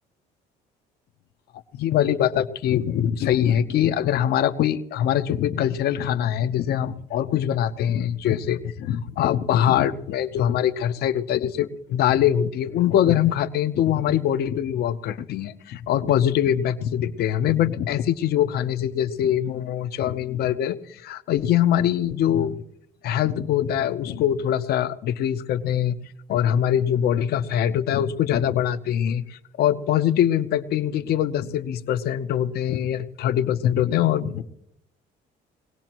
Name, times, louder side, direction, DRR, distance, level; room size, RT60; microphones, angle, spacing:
voice 1, 1.7-22.6 23.0-26.0 26.3-34.4, left 10 dB, 70° left, 10 dB, 0.8 m, -23 dB
21.5 x 17.5 x 3.0 m, 0.75 s
cardioid pair, 110°, 17 cm